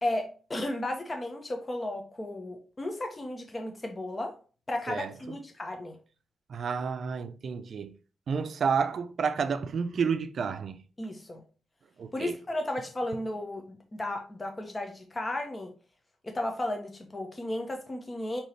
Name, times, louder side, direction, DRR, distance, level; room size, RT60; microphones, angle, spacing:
voice 1, 0.0-4.4 4.7-6.0 11.0-11.4 12.1-15.7 16.2-18.4, left 1 dB, 25° left, 0.8 m, -34 dB
voice 2, 6.5-7.9 8.3-10.8 12.0-12.3, right 6 dB, 65° right, 0.5 m, -30 dB
5.4 x 2.9 x 3.2 m
cardioid pair, 70°, 0 cm